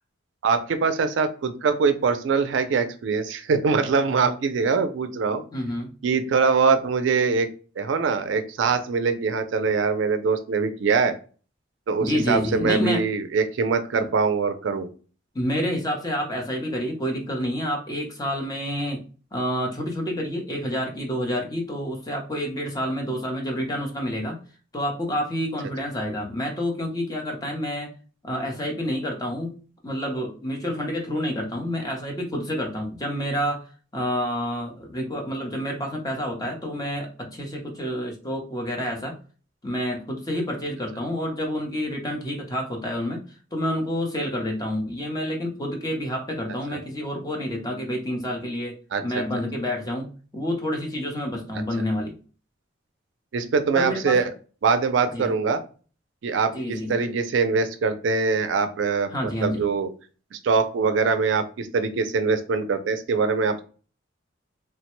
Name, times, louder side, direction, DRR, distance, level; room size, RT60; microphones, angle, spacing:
voice 1, 0.4-5.4 6.0-7.5 7.8-11.2 11.9-14.9 48.9-49.0 53.3-54.3 54.6-55.6 56.2-59.1 59.4-59.9 60.3-63.6, right 5 dB, 70° right, 9 dB, 0.4 m, -23 dB
voice 2, 5.5-5.9 12.0-13.0 13.9-14.1 15.3-19.0 19.3-24.4 24.7-27.9 28.2-29.6 29.8-33.6 33.9-39.2 39.6-43.2 43.5-48.7 49.0-52.1 53.7-54.2 55.1-55.3 56.5-57.0 59.1-59.6, equal, 20° left, 2 dB, 0.7 m, -28 dB
3.2 x 2.1 x 3.0 m, 0.38 s
head